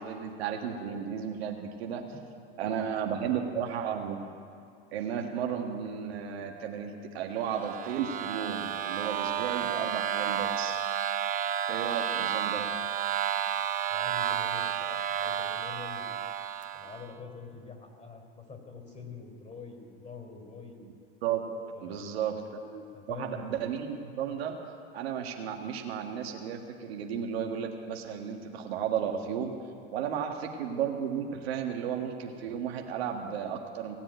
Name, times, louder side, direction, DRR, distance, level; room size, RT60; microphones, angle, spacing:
voice 1, 0.0-2.0 2.6-4.3 4.9-10.8 11.7-12.8 21.2-21.4 21.8-24.6 24.9-29.5 29.9-34.0, right 8 dB, 80° right, 3 dB, 1.6 m, -34 dB
voice 2, 3.0-3.7 13.9-16.1 16.7-20.8 21.7-22.4 22.9-23.4, left 5 dB, 25° left, 3 dB, 4.0 m, -46 dB
sound 1, 7.4-17.1, right 9 dB, 25° right, 0.6 m, -31 dB
18.0 x 7.7 x 9.1 m, 2.4 s
hypercardioid pair, 100°, 31 cm